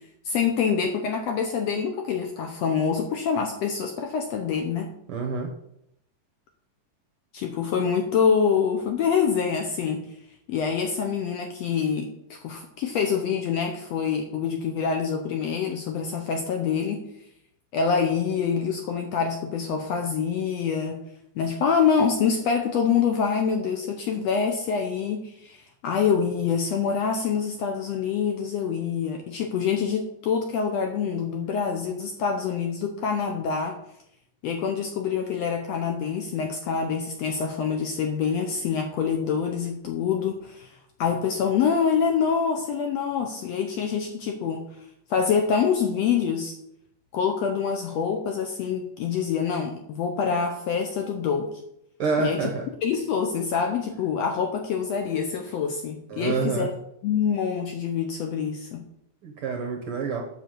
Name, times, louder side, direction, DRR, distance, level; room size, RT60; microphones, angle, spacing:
voice 1, 0.2-4.9 7.3-10.1 10.5-17.0 17.7-21.0 21.3-33.7 34.4-40.7 41.0-44.6 45.1-46.5 47.1-51.5 52.2-52.5 52.8-56.7 57.0-58.8, left 6 dB, 80° left, 4 dB, 1.5 m, -26 dB
voice 2, 5.1-5.5 52.0-52.6 56.1-56.7 59.2-60.2, right 5 dB, 70° right, 2 dB, 1.3 m, -27 dB
8.2 x 5.7 x 7.7 m, 0.78 s
omnidirectional pair, 4.1 m